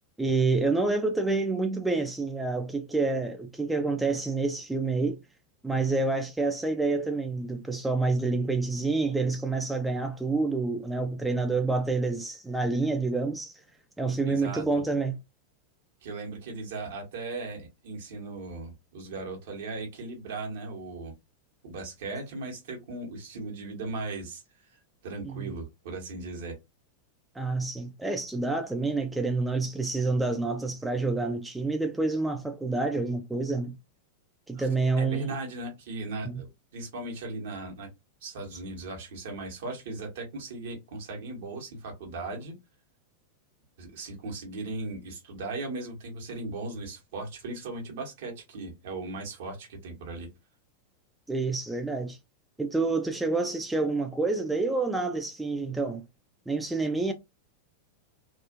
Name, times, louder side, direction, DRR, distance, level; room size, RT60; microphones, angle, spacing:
voice 1, 0.2-5.2 5.6-13.6 14.0-15.2 25.2-25.5 27.4-33.7 34.5-35.3 36.3-36.4 51.3-52.2 52.6-56.0 56.5-57.1, right 3 dB, 5° right, 0.3 m, -28 dB
voice 2, 14.3-14.7 16.0-21.1 21.6-24.4 24.7-26.6 34.5-34.7 35.0-37.9 38.2-42.6 43.8-50.3, right 3 dB, 55° right, 1.0 m, -38 dB
2.4 x 2.4 x 2.4 m
figure-of-eight pair, 90°, 0 cm